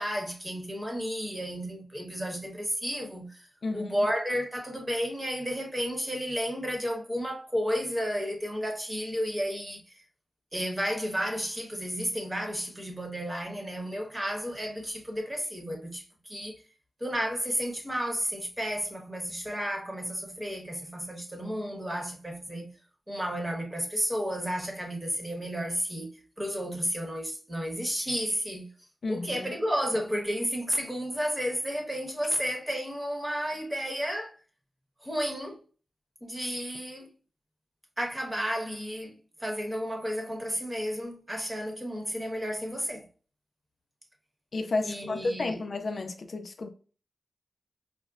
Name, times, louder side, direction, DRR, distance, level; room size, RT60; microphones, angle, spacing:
voice 1, 0.0-3.5 3.7-10.0 10.5-16.6 17.0-22.7 23.1-28.7 29.1-34.3 35.0-35.6 36.2-37.1 38.0-43.1 44.8-45.6, equal, 15° right, 1.0 m, -32 dB
voice 2, 3.6-4.0 29.0-29.5 44.5-46.7, left 3 dB, 55° left, 0.4 m, -32 dB
4.9 x 2.1 x 2.3 m
wide cardioid pair, 110°, 0 cm